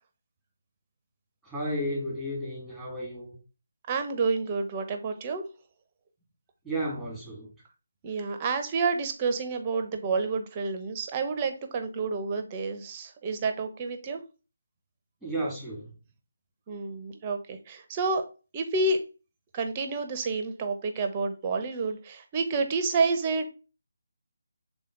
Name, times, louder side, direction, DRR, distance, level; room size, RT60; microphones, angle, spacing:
voice 1, 1.4-3.4 6.6-7.5 15.2-15.9, equal, ahead, 2.0 m, -33 dB
voice 2, 3.9-5.4 8.0-14.2 16.7-18.2 18.5-19.0 19.5-23.5, right 4 dB, 25° right, 0.9 m, -29 dB
6.7 x 3.8 x 3.8 m
figure-of-eight pair, 155°, 0 cm